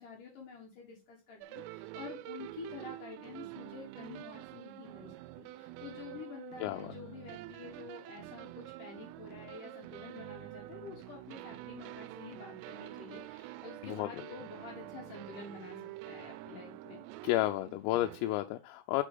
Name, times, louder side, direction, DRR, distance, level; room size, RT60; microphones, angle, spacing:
voice 1, 0.0-15.8 16.0-17.0, left 5 dB, 70° left, 2.0 m, -48 dB
sound 1, 1.4-18.4, right 16 dB, 85° right, 3.1 m, -47 dB
voice 2, 6.6-7.0 13.8-14.1 17.2-19.0, left 15 dB, 90° left, 3.2 m, -32 dB
8.3 x 5.9 x 3.6 m
omnidirectional pair, 5.9 m